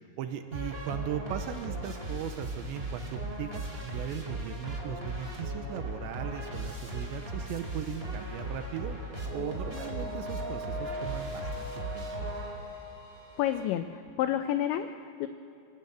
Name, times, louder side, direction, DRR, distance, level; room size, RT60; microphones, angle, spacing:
voice 1, 0.2-9.0 9.3-12.1, right 10 dB, 80° right, 8 dB, 2.7 m, -38 dB
sound 1, 0.5-12.9, right 1 dB, 15° right, 2.1 m, -38 dB
sound 2, 8.9-13.7, equal, 45° left, 7.2 m, -41 dB
voice 2, 13.4-15.3, left 11 dB, 85° left, 9 dB, 2.6 m, -30 dB
26.0 x 16.5 x 8.1 m, 2.7 s
omnidirectional pair, 6.0 m